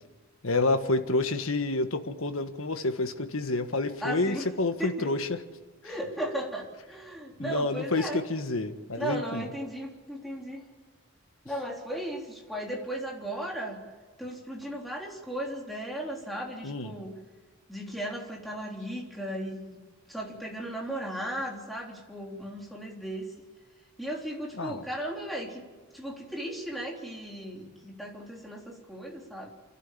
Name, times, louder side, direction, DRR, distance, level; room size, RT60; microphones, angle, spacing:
voice 1, 0.4-5.4 5.8-5.9 7.4-9.5 16.6-16.9 24.5-24.8, left 2 dB, 75° left, 8 dB, 1.6 m, -29 dB
voice 2, 4.0-4.5 4.8-5.1 5.8-8.2 9.0-10.6 11.5-13.8 14.2-17.1 17.7-19.6 20.1-23.3 24.0-25.6 25.9-29.5, right 1 dB, ahead, -2 dB, 3.7 m, -36 dB
28.0 x 12.5 x 8.6 m, 1.4 s
head